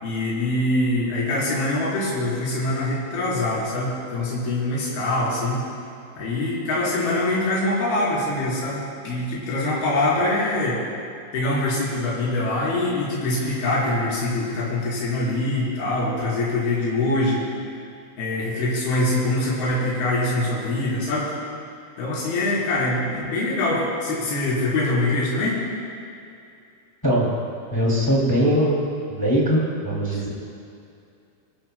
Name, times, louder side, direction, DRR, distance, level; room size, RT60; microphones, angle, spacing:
voice 1, 0.0-5.6 6.2-10.8 11.3-17.5 18.2-21.3 22.0-25.6 30.1-30.2, left 2 dB, 50° left, -8 dB, 6.0 m, -24 dB
voice 2, 27.7-28.8 29.1-30.3, equal, 20° left, -6 dB, 0.6 m, -21 dB
25.0 x 15.0 x 2.3 m, 2.6 s
omnidirectional pair, 5.7 m